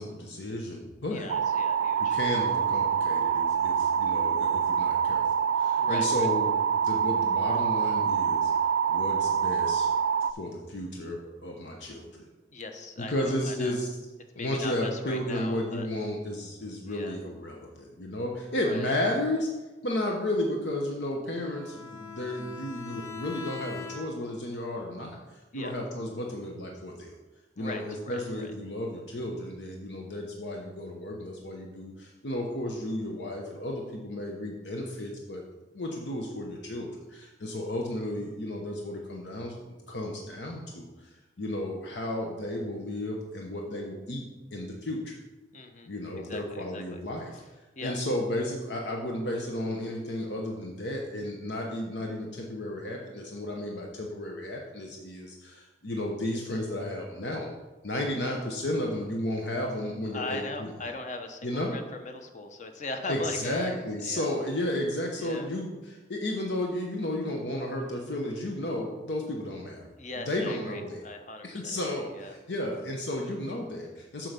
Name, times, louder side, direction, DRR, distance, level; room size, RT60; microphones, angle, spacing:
voice 1, 0.0-1.3 2.0-8.5 8.9-9.9 10.3-12.3 13.0-13.9 14.3-19.5 19.8-27.1 27.6-35.4 35.7-39.6 39.9-44.2 44.5-45.2 45.8-47.4 47.8-57.5 57.8-60.7 61.4-61.8 63.1-69.9 70.3-71.0 71.4-74.3, left 1 dB, 80° left, 0 dB, 1.0 m, -33 dB
voice 2, 1.1-2.2 5.8-6.3 12.5-13.7 14.4-15.9 16.9-17.1 18.6-18.9 25.5-25.7 27.6-28.5 45.5-45.9 46.2-47.0 47.8-48.0 60.1-64.3 65.2-65.5 70.0-72.4, left 2 dB, 45° left, 6 dB, 0.9 m, -39 dB
sound 1, 1.3-10.3, right 7 dB, 80° right, 0.3 m, -26 dB
Bowed string instrument, 21.4-24.4, left 5 dB, 20° left, 1.7 m, -42 dB
7.7 x 4.6 x 6.8 m, 1.2 s
head